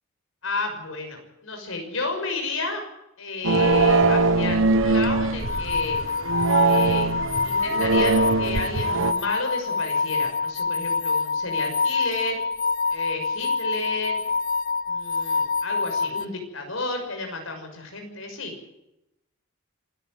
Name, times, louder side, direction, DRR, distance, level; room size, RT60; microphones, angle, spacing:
voice 1, 0.4-2.9 3.2-6.0 6.6-12.4 12.9-14.2 14.9-18.5, left 3 dB, 70° left, 4 dB, 6.2 m, -32 dB
sound 1, 3.4-9.1, right 3 dB, 70° right, 1.3 m, -21 dB
sound 2, 5.4-16.2, left 4 dB, 45° left, 0.7 m, -26 dB
27.0 x 12.5 x 9.2 m, 0.88 s
head